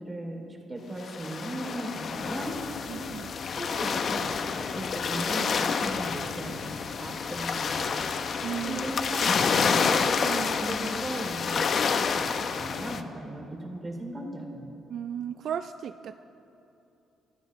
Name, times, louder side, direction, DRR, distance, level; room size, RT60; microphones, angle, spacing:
voice 1, 0.0-2.6 3.5-8.1 8.6-10.0 10.6-14.7, right 1 dB, 25° right, 0 dB, 2.8 m, -37 dB
sound 1, 1.0-13.0, left 5 dB, 55° left, 0.7 m, -29 dB
voice 2, 2.9-3.3 8.4-8.8 9.8-10.6 14.9-16.3, right 9 dB, 65° right, 10 dB, 0.3 m, -36 dB
25.5 x 13.0 x 3.1 m, 2.9 s
cardioid pair, 90°, 0 cm